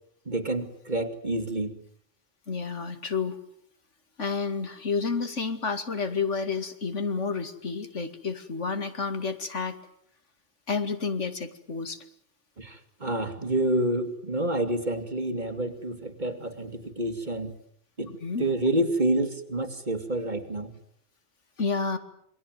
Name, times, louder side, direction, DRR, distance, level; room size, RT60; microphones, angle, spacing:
voice 1, 0.3-1.7 12.6-17.5 18.0-18.1 18.4-20.7, right 1 dB, 40° right, 8 dB, 2.6 m, -28 dB
voice 2, 2.5-3.4 4.2-9.8 10.7-12.0 18.1-18.4 21.6-22.0, left 4 dB, 80° left, 9 dB, 2.6 m, -30 dB
28.0 x 22.5 x 9.3 m, 0.68 s
omnidirectional pair, 1.2 m